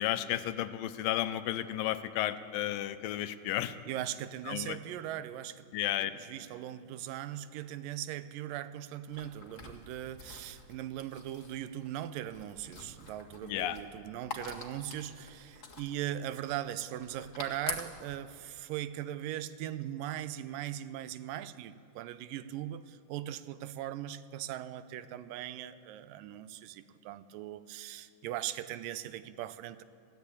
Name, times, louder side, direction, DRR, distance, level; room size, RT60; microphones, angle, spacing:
voice 1, 0.0-3.8 4.5-4.8 5.7-6.1 13.4-13.8, left 13 dB, 90° left, 12 dB, 2.4 m, -33 dB
voice 2, 3.9-5.7 6.0-29.8, right 12 dB, 80° right, 14 dB, 2.3 m, -39 dB
sound 1, 9.1-18.2, left 4 dB, 35° left, 1.4 m, -46 dB
21.5 x 15.5 x 8.4 m, 2.6 s
omnidirectional pair, 4.0 m